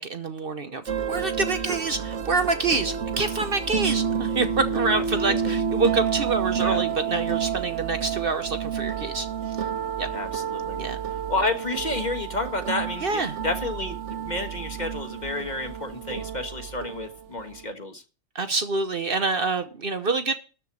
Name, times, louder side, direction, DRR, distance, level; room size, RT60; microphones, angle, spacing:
voice 1, 0.0-9.3 10.0-10.1 10.8-11.0 13.0-13.4 18.3-20.3, right 3 dB, 50° right, 9 dB, 1.1 m, -26 dB
sound 1, 0.9-17.7, right 7 dB, 65° right, 1.3 m, -30 dB
voice 2, 4.9-5.5 6.6-6.8 10.1-10.8 11.3-18.0, left 2 dB, 35° left, 6 dB, 1.4 m, -31 dB
13.0 x 4.5 x 8.5 m, 0.34 s
omnidirectional pair, 1.3 m